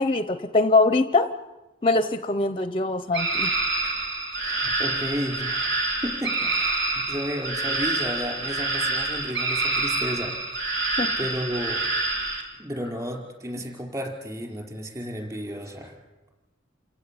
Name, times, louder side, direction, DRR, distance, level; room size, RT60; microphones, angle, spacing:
voice 1, 0.0-1.3 1.8-3.5 11.0-11.2, left 3 dB, 25° left, 11 dB, 0.8 m, -22 dB
sound 1, 3.1-12.4, right 3 dB, 65° right, 4.4 m, -27 dB
voice 2, 4.4-5.7 6.0-10.8 11.2-11.8 12.6-16.0, equal, 20° right, 2 dB, 5.2 m, -33 dB
28.5 x 17.0 x 8.7 m, 1.1 s
head